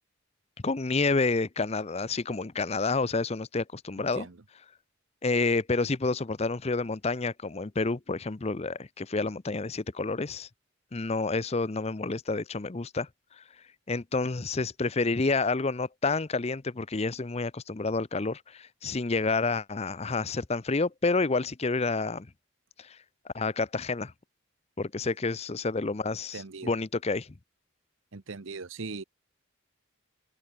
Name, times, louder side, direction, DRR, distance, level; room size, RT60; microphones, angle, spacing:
voice 1, 0.6-4.3 5.2-10.5 10.9-13.1 13.4-13.5 13.9-22.3 22.8-23.0 23.3-24.1 24.8-27.3, left 3 dB, 30° left, 0.6 m, -29 dB
voice 2, 4.0-4.4 26.3-26.7 28.1-29.0, right 4 dB, 70° right, 0.9 m, -40 dB
head